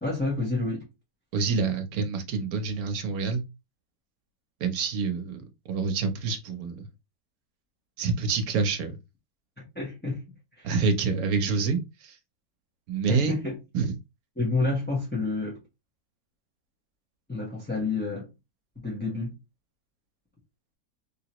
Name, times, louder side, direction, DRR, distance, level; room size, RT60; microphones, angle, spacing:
voice 1, 0.0-0.8 9.7-10.2 10.6-10.7 13.1-13.6 14.4-15.6 17.3-18.3 18.8-19.4, left 3 dB, 10° left, 0.9 m, -29 dB
voice 2, 1.3-3.4 4.6-6.9 8.0-9.0 10.6-12.2 12.9-13.4 13.7-14.0, right 4 dB, 65° right, 1.2 m, -27 dB
3.5 x 2.9 x 2.9 m
omnidirectional pair, 1.7 m